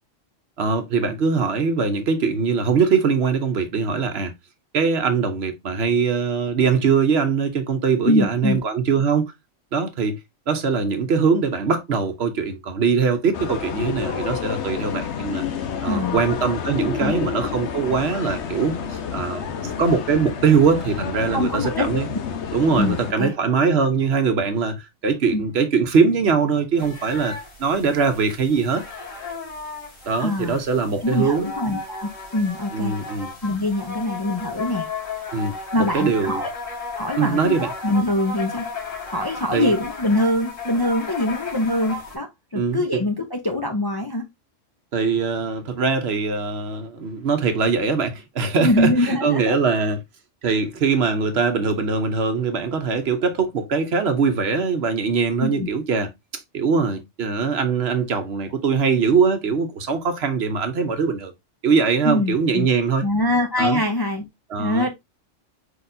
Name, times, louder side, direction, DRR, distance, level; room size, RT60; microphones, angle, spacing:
voice 1, 0.6-4.3 4.7-9.3 9.7-10.2 10.5-15.4 15.8-22.1 22.5-28.8 30.1-31.5 32.7-33.3 35.3-36.4 37.2-37.7 39.5-39.7 42.5-43.0 44.9-50.0 50.4-61.3 61.6-63.0 63.6-63.8 64.5-64.9, right 5 dB, 60° right, 1.0 m, -22 dB
voice 2, 8.0-8.6 15.8-16.2 17.0-17.1 21.3-21.9 22.8-23.3 25.3-25.4 30.2-30.6 31.0-32.9 33.4-34.9 35.7-36.5 37.0-38.7 39.1-44.2 48.6-49.5 55.4-55.7 62.0-62.7 63.0-64.2 64.6-64.9, left 1 dB, 25° left, 0.5 m, -23 dB
sound 1, 13.3-23.1, left 7 dB, 65° left, 1.0 m, -29 dB
sound 2, 26.8-42.1, left 4 dB, 90° left, 2.3 m, -35 dB
4.8 x 4.2 x 2.6 m
omnidirectional pair, 1.3 m